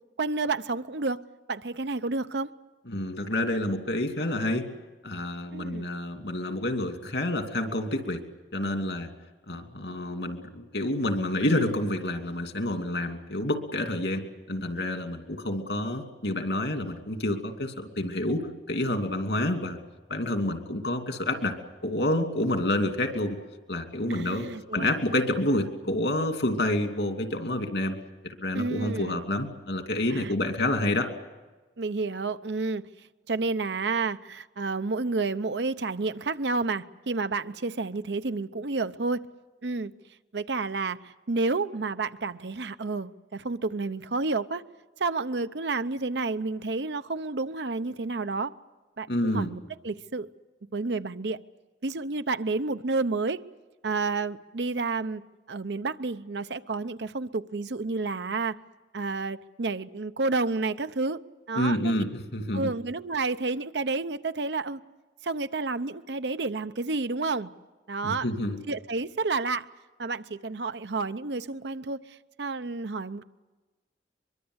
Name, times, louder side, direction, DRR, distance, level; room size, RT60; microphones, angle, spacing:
voice 1, 0.2-1.2 1.5-2.5 5.5-5.9 24.1-24.9 28.5-29.2 30.1-30.4 31.8-32.9 33.3-39.2 39.6-39.9 40.3-44.6 45.0-48.5 49.0-50.3 50.7-51.4 51.8-53.4 53.8-55.2 55.5-58.6 58.9-61.2 61.5-61.9 62.5-64.8 65.2-67.5 67.9-68.3 68.7-69.7 70.0-73.2, right 3 dB, 80° right, 0.8 m, -30 dB
voice 2, 2.9-4.7 5.0-8.2 8.5-9.1 9.5-19.8 20.1-21.6 21.8-23.4 23.7-24.5 24.7-28.0 28.2-31.1 49.1-49.5 61.6-62.7 68.0-68.6, left 1 dB, 75° left, 2.7 m, -28 dB
23.5 x 23.0 x 8.0 m
head